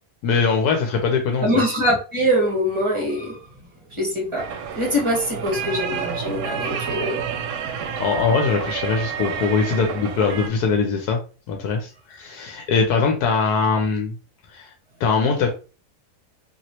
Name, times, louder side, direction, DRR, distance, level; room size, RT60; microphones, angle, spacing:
voice 1, 0.2-1.6 8.0-11.2 11.5-14.1 14.5-14.7 15.0-15.5, left 5 dB, 80° left, 3 dB, 1.2 m, -21 dB
voice 2, 1.4-3.4 3.9-7.2, equal, 20° right, -2 dB, 1.1 m, -23 dB
sound 1, 4.4-10.5, right 7 dB, 75° right, 1.0 m, -29 dB
3.0 x 2.8 x 2.8 m, 0.35 s
omnidirectional pair, 1.6 m